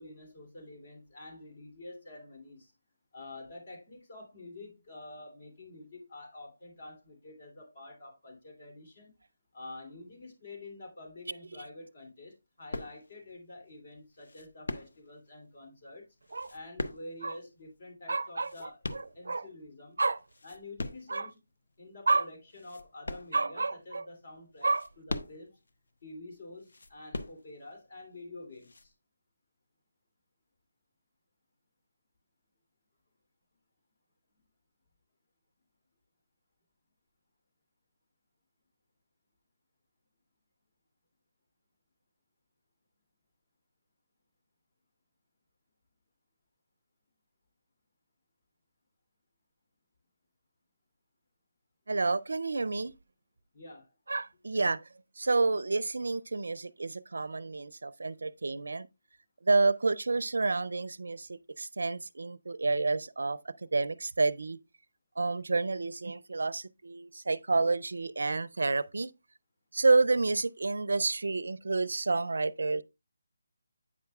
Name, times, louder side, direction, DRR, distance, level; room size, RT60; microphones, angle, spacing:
voice 1, 0.0-2.7 3.1-9.1 9.5-16.1 16.5-18.8 19.1-20.0 20.4-21.4 21.8-25.6 26.0-28.9 53.5-53.9, left 2 dB, 50° left, 2.7 m, -48 dB
sound 1, 12.7-13.3 14.2-15.3 16.2-17.4 18.2-19.6 20.1-21.2 21.7-21.8 22.5-23.8 24.5-25.7 26.6-27.8 28.5-28.9, left 2 dB, 70° left, 0.7 m, -40 dB
voice 2, 18.1-18.5 18.9-19.4 20.0-20.2 21.1-21.3 22.1-22.2 23.3-24.0 24.6-24.9 51.9-52.9 54.1-54.8 55.2-58.9 59.4-63.4 63.7-64.6 65.2-69.1 69.7-72.8, right 3 dB, 75° right, 0.4 m, -29 dB
8.3 x 5.8 x 2.3 m
figure-of-eight pair, 160°, 0 cm